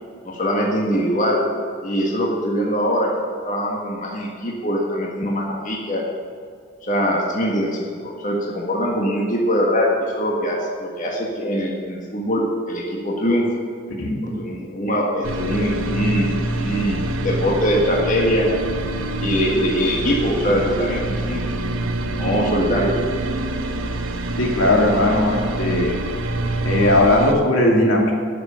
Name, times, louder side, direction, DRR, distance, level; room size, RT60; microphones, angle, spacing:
voice 1, 0.3-1.4 1.8-3.1 3.4-6.0 6.8-13.5 14.2-16.3 16.5-18.5 19.2-21.4 22.1-22.9, equal, 40° left, -2 dB, 1.6 m, -22 dB
voice 2, 14.0-14.4 24.4-25.9 26.6-28.1, left 1 dB, 80° left, -1 dB, 2.4 m, -18 dB
sound 1, 15.2-27.3, right 2 dB, 85° right, 1.0 m, -26 dB
12.5 x 6.9 x 7.0 m, 2.2 s
head